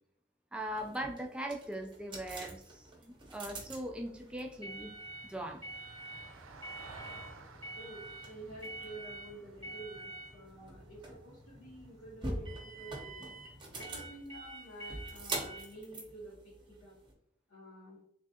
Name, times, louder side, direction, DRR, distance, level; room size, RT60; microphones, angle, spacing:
voice 1, 0.5-4.9 5.2-5.6 10.6-10.7, right 1 dB, 5° right, 3 dB, 0.3 m, -40 dB
sound 1, 0.7-17.1, right 2 dB, 25° right, 0.7 m, -45 dB
Vehicle, 1.6-12.0 14.3-14.4, right 3 dB, 80° right, 0.5 m, -57 dB
voice 2, 7.7-13.3 13.7-16.9 17.5-18.0, right 1 dB, 85° left, -8 dB, 1.3 m, -49 dB
3.5 x 3.3 x 2.7 m, 0.72 s
head